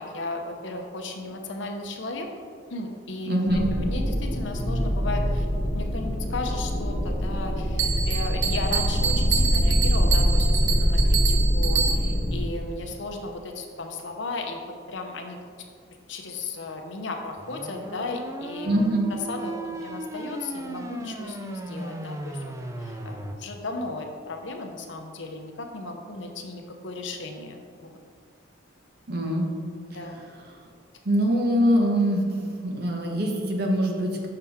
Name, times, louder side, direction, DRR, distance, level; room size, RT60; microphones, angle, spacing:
voice 1, 0.0-2.3 2.7-5.5 5.7-14.6 14.9-15.4 16.1-18.7 19.1-22.4 22.8-28.0 29.9-30.2, left 2 dB, 65° left, 3 dB, 0.7 m, -35 dB
voice 2, 3.3-3.7 18.6-19.1 29.1-29.4 31.0-32.2 32.6-34.3, equal, 50° right, 1 dB, 0.9 m, -23 dB
sound 1, 3.5-12.4, equal, 35° right, 1.8 m, -24 dB
Bell, 7.8-12.3, right 7 dB, 80° right, 0.7 m, -28 dB
sound 2, 17.4-23.3, right 1 dB, 15° right, 0.3 m, -36 dB
6.8 x 5.7 x 3.5 m, 2.1 s
head